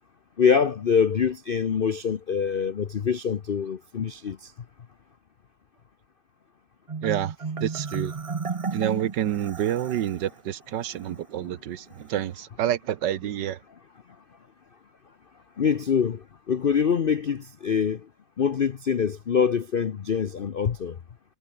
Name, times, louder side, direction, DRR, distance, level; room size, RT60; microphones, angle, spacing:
voice 1, 0.4-4.5 15.6-18.1 18.4-21.0, left 7 dB, 75° left, 0.5 m, -24 dB
Marimba xylophone, 6.9-10.2, right 5 dB, 50° right, 0.4 m, -32 dB
voice 2, 7.0-8.1 8.7-13.6, right 11 dB, 70° right, 1.5 m, -28 dB
omnidirectional pair, 2.1 m